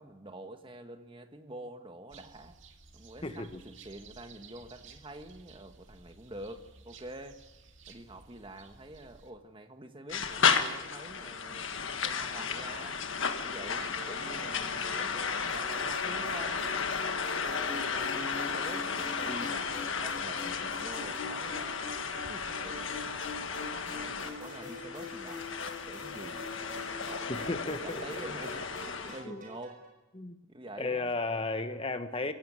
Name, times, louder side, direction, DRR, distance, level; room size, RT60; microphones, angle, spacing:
voice 1, 0.0-2.6 2.9-7.4 7.9-11.7 12.0-13.0 13.4-16.6 17.3-21.8 22.3-23.3 23.9-25.5 25.9-26.5 27.0-28.8 29.1-29.8 30.4-31.2, right 1 dB, 25° right, 7 dB, 1.5 m, -46 dB
sound 1, 2.1-9.3, right 4 dB, 65° right, 2.2 m, -55 dB
voice 2, 3.2-3.6 17.6-17.7 27.3-28.0 29.0-29.4 30.2-30.4 30.8-32.3, left 3 dB, 30° left, 9 dB, 1.1 m, -34 dB
sound 2, 10.1-29.2, left 6 dB, 70° left, 1.6 m, -34 dB
sound 3, 14.0-29.9, left 2 dB, 40° right, 5.1 m, -45 dB
23.0 x 16.5 x 9.6 m, 1.0 s
head